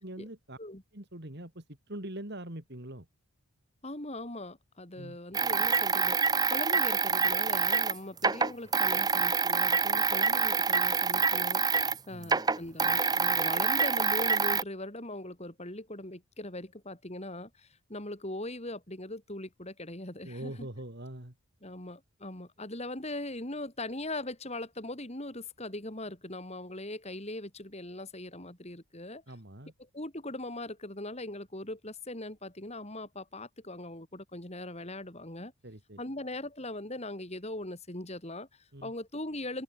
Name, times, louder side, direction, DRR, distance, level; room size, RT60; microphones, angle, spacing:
voice 1, 0.0-0.6 0.9-3.1 5.0-5.2 12.1-12.4 20.2-21.3 29.3-29.7 35.6-36.0 38.7-38.9, right 1 dB, 50° right, 3.0 m, -43 dB
voice 2, 3.8-11.6 12.1-20.7 21.6-29.2 29.9-35.5 36.0-39.6, left 1 dB, 30° left, 3.5 m, -40 dB
sound 1, 5.3-12.0 12.2-14.6, right 5 dB, 15° right, 0.7 m, -26 dB
head